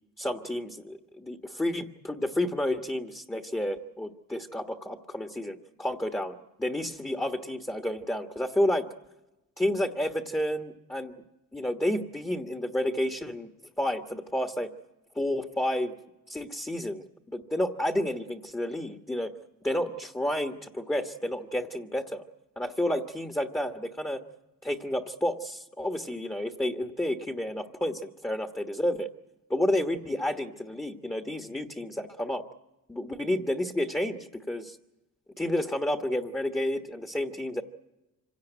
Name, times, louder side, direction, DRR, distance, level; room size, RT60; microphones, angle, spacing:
voice 1, 0.2-8.9 9.6-11.1 11.5-13.5 13.8-14.7 15.1-15.9 16.3-19.3 19.6-22.2 22.6-24.2 24.6-29.1 29.5-32.4 32.9-34.8 35.4-37.6, left 1 dB, 10° left, 6 dB, 1.3 m, -30 dB
26.0 x 17.0 x 9.2 m, 0.99 s
cardioid pair, 110°, 34 cm